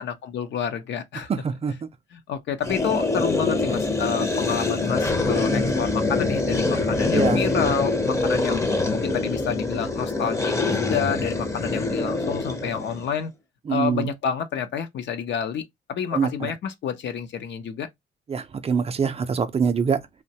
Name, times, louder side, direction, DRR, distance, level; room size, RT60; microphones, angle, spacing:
voice 1, 0.0-1.3 2.1-8.6 8.9-13.3 13.7-17.9, left 7 dB, 65° left, 0.6 m, -29 dB
voice 2, 1.3-1.7 7.1-7.4 13.7-14.1 16.1-16.5 18.3-20.0, right 6 dB, 30° right, 0.4 m, -24 dB
sound 1, 2.6-13.1, left 3 dB, 15° left, 0.6 m, -24 dB
2.9 x 2.1 x 2.7 m
cardioid pair, 90°, 20 cm